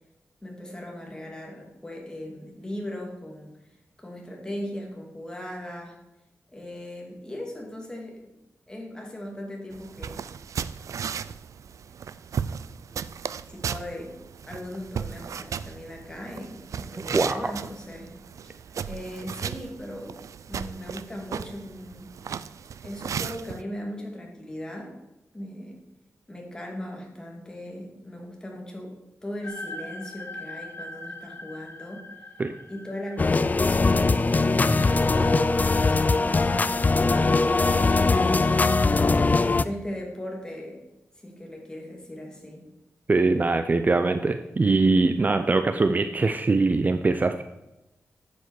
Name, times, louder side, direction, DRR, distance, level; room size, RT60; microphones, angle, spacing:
voice 1, 0.4-3.7 4.0-6.0 6.5-8.4 8.7-10.3 13.5-14.1 14.4-18.1 18.8-20.2 20.5-22.1 22.8-25.0 25.3-25.8 26.3-32.1 32.7-37.4 38.0-39.1 39.6-40.8 41.1-42.6, left 1 dB, 15° left, 0 dB, 2.6 m, -38 dB
sound 1, 9.7-23.6, right 7 dB, 85° right, 0.4 m, -36 dB
voice 2, 17.1-17.5 32.4-32.5 43.1-47.4, right 3 dB, 30° right, 9 dB, 0.6 m, -22 dB
sound 2, 29.4-35.6, left 2 dB, 50° left, 1.3 m, -42 dB
sound 3, 33.2-39.6, left 3 dB, 30° left, 0.5 m, -21 dB
12.0 x 8.2 x 4.8 m, 0.96 s
wide cardioid pair, 115°, 5 cm